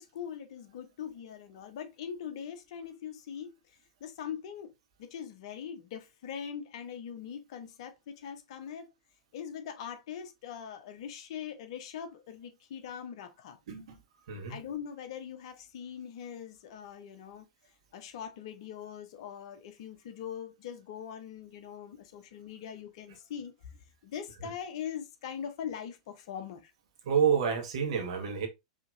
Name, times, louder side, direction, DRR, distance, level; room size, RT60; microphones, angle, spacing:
voice 1, 0.0-4.7 5.0-8.9 9.3-13.6 14.5-17.5 17.9-23.7 24.0-26.7, left 8 dB, 55° left, 0.8 m, -42 dB
voice 2, 13.7-14.0 14.3-14.6 27.0-28.5, right 7 dB, 60° right, 1.3 m, -29 dB
4.9 x 2.9 x 2.6 m
figure-of-eight pair, 95°, 4 cm